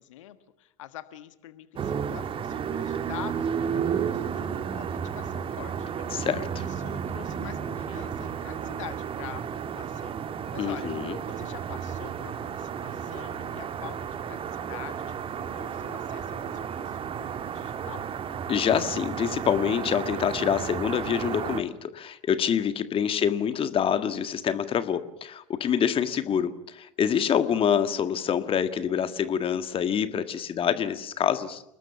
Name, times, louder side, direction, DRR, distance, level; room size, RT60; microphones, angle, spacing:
voice 1, 0.0-6.1 6.6-10.9 11.3-15.2 15.6-18.1 23.0-23.2, left 13 dB, 65° left, 12 dB, 1.5 m, -45 dB
sound 1, 1.8-21.6, right 7 dB, 30° right, 1.7 m, -32 dB
voice 2, 6.1-6.6 10.6-11.2 18.5-31.6, left 8 dB, 30° left, 11 dB, 1.7 m, -26 dB
30.0 x 20.0 x 7.0 m, 0.83 s
figure-of-eight pair, 75°, 17 cm